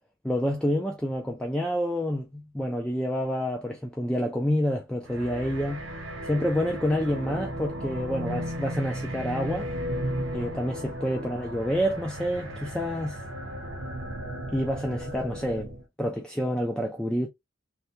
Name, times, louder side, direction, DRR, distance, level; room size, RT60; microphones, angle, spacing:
voice 1, 0.2-5.8 6.2-9.7 10.3-13.2 14.5-17.3, equal, 5° left, 0.4 m, -28 dB
sound 1, 5.0-15.8, equal, 75° right, 0.9 m, -35 dB
3.2 x 2.2 x 2.7 m
head